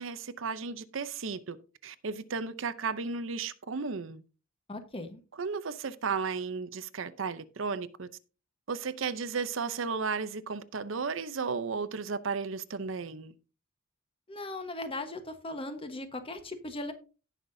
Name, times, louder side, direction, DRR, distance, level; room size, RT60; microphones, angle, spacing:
voice 1, 0.0-1.6 1.8-4.2 5.4-8.1 8.7-13.3, right 5 dB, 65° right, 0.7 m, -34 dB
voice 2, 4.7-5.2 14.3-16.9, left 2 dB, 25° left, 1.2 m, -38 dB
17.5 x 5.8 x 2.7 m
head